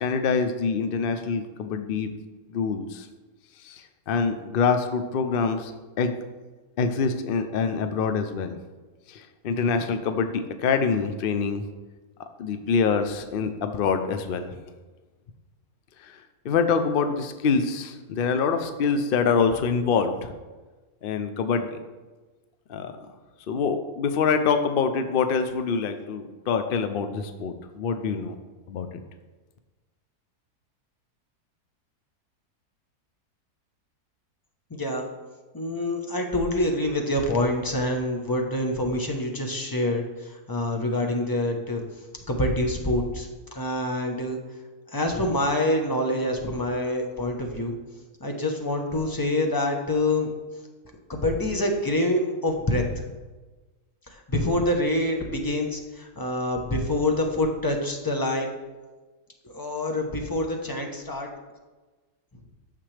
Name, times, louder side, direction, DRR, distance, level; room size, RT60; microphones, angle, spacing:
voice 1, 0.0-2.1 2.5-3.1 3.6-5.7 6.0-6.2 6.8-8.6 9.1-11.6 12.4-14.6 16.4-20.3 21.0-21.8 22.7-22.9 23.5-28.4 28.7-28.9, left 5 dB, 85° left, 8 dB, 0.4 m, -25 dB
voice 2, 34.7-35.1 35.5-41.8 42.3-43.3 43.5-44.4 44.9-47.8 48.2-50.3 51.1-52.8 54.1-58.5 59.5-61.3, left 1 dB, 20° left, 2 dB, 0.6 m, -26 dB
9.1 x 6.8 x 3.3 m, 1.2 s
omnidirectional pair, 1.6 m